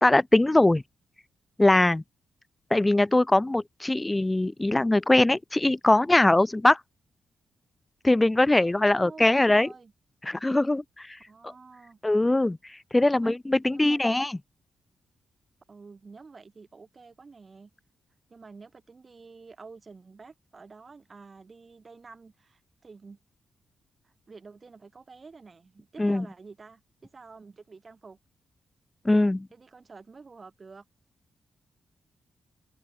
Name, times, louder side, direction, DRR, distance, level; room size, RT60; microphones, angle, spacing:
voice 1, 0.0-0.8 1.6-2.0 2.7-6.8 8.0-9.7 10.2-11.1 12.0-12.6 12.9-14.4 26.0-26.2 29.0-29.5, left 2 dB, 15° left, 0.9 m, -21 dB
voice 2, 9.0-9.9 11.3-12.0 13.1-13.3 13.7-14.1 15.7-17.7 18.3-23.2 24.0-28.2 29.5-30.8, right 4 dB, 35° right, 5.6 m, -49 dB
cardioid pair, 110°, 0 cm